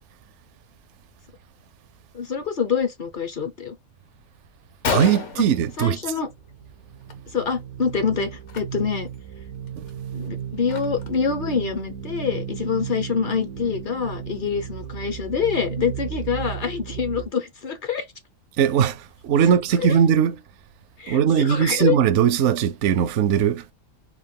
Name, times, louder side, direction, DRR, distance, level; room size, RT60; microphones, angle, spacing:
voice 1, 2.1-3.8 5.8-6.3 7.3-9.1 10.1-18.0 19.8-20.0 21.0-22.0, left 6 dB, 45° left, 0.7 m, -26 dB
Gunshot gunfire, 4.2-4.3 4.6-4.7 4.8-6.5 6.8-7.1 7.4-7.6 8.4-8.6 9.1-9.2 9.7-11.3, left 5 dB, 65° left, 1.2 m, -31 dB
voice 2, 4.9-6.1 18.6-20.4 21.1-23.7, right 8 dB, 70° right, 0.8 m, -20 dB
sound 1, 6.0-17.3, right 8 dB, 85° right, 1.2 m, -35 dB
4.4 x 2.3 x 3.7 m
omnidirectional pair, 1.4 m